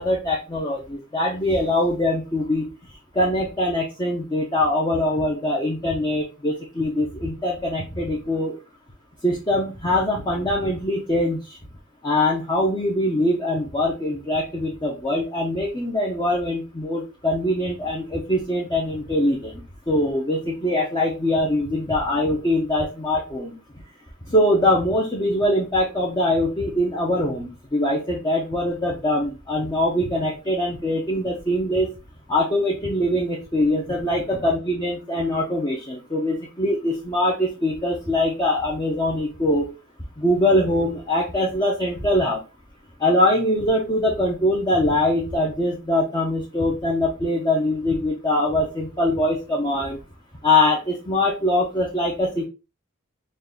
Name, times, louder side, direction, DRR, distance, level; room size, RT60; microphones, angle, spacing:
voice 1, 0.0-2.7 3.1-8.5 9.2-11.4 12.0-19.6 19.9-23.5 24.3-31.9 32.3-39.7 40.2-42.4 43.0-50.0 50.4-52.5, left 1 dB, 20° left, -3 dB, 0.7 m, -23 dB
4.0 x 2.3 x 3.4 m, 0.29 s
head